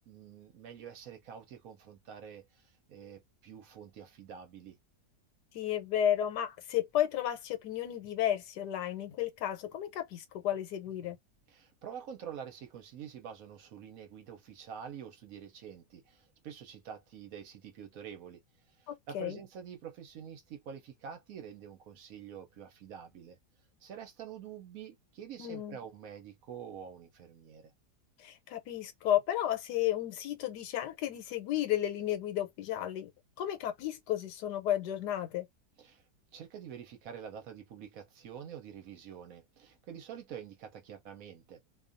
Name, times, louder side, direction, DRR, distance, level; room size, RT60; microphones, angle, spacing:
voice 1, 0.1-4.8 11.5-18.4 18.7-23.4 23.8-27.7 35.8-36.0 36.3-41.6, right 8 dB, 65° right, 0.9 m, -47 dB
voice 2, 5.5-11.2 18.9-19.4 25.4-25.8 28.2-33.1 33.4-35.5, left 11 dB, 80° left, 1.3 m, -33 dB
2.6 x 2.3 x 2.5 m
omnidirectional pair, 1.8 m